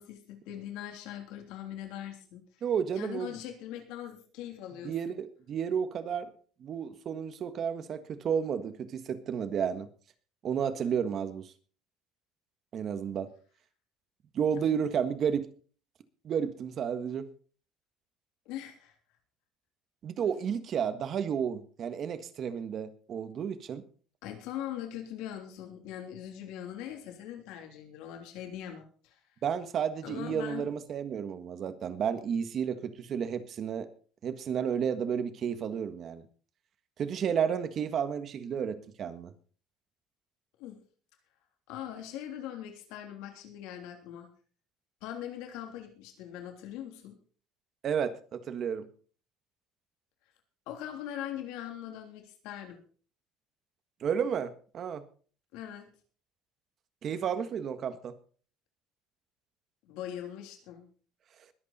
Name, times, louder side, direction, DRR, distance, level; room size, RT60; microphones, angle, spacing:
voice 1, 0.0-2.4 3.0-4.9 14.5-14.8 18.4-18.9 24.2-29.2 30.0-30.7 40.6-40.8 41.7-44.3 45.0-47.2 50.7-52.8 55.5-55.9 59.8-60.9, left 11 dB, 80° left, 4 dB, 3.2 m, -41 dB
voice 2, 2.6-3.3 4.8-6.3 6.6-9.9 10.4-11.5 12.7-13.3 14.3-15.5 16.2-17.3 20.0-23.8 29.4-33.9 34.2-36.2 37.0-39.3 47.8-48.9 54.0-55.0 57.0-58.2, right 7 dB, 40° right, 10 dB, 1.5 m, -32 dB
21.5 x 8.5 x 4.3 m, 0.42 s
cardioid pair, 150°, 0 cm